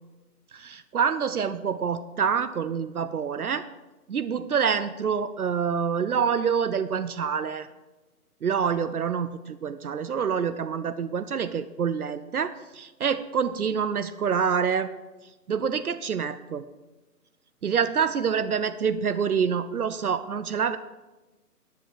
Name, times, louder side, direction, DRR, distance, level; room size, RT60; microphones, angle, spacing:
voice 1, 0.5-3.7 4.1-7.7 8.4-14.9 15.5-16.7 17.6-20.8, right 6 dB, 65° right, 13 dB, 0.7 m, -26 dB
10.5 x 7.5 x 6.7 m, 1.1 s
hypercardioid pair, 175°, 47 cm